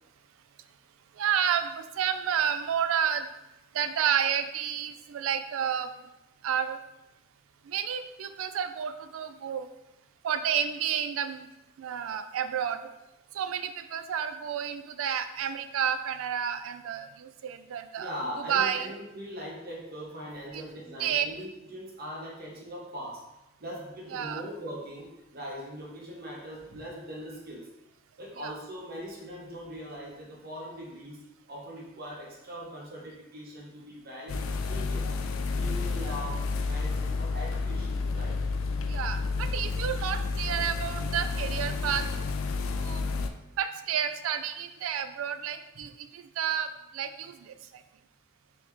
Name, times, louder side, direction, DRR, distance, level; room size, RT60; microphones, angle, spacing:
voice 1, 1.2-3.3 3.7-5.9 6.4-6.8 7.7-9.7 10.2-11.5 11.8-12.8 13.3-18.1 18.5-18.9 20.5-20.7 21.0-21.3 24.1-24.4 28.4-28.5 36.0-36.1 38.9-42.1 42.7-43.0 43.6-46.7 46.9-47.6, right 8 dB, 80° right, 10 dB, 0.3 m, -30 dB
voice 2, 18.0-23.2 23.6-27.7 28.2-31.2 31.5-35.1 35.5-38.4, equal, 50° right, -3 dB, 1.1 m, -41 dB
sound 1, 34.3-43.3, left 4 dB, 75° left, 0.3 m, -30 dB
4.1 x 3.4 x 3.1 m, 0.94 s
head